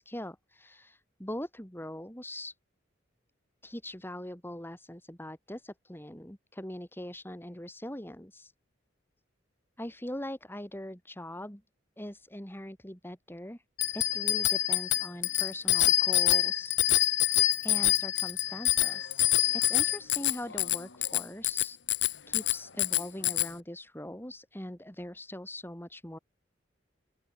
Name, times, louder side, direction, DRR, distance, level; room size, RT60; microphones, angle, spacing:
voice 1, 0.0-2.6 3.6-8.5 9.8-11.6 12.0-13.6 13.9-17.3 17.6-19.2 19.5-21.8 22.3-26.2, left 1 dB, 10° left, 4.6 m, -42 dB
Bicycle bell, 13.8-23.5, left 15 dB, 65° left, 1.8 m, -26 dB
open air
head